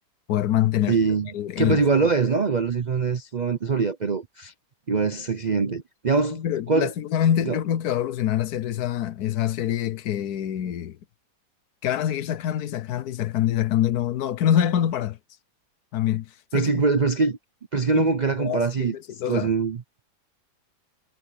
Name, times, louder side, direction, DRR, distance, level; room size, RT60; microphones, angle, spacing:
voice 1, 0.3-1.0 1.3-1.8 6.3-11.0 11.8-15.2 15.9-16.7 17.9-18.1 18.4-19.5, left 11 dB, 70° left, 1.2 m, -25 dB
voice 2, 0.9-1.3 1.6-4.5 4.9-6.4 6.7-6.9 7.4-7.6 16.5-17.4 17.7-18.9 19.3-19.8, right 4 dB, 55° right, 0.4 m, -23 dB
omnidirectional pair, 1.9 m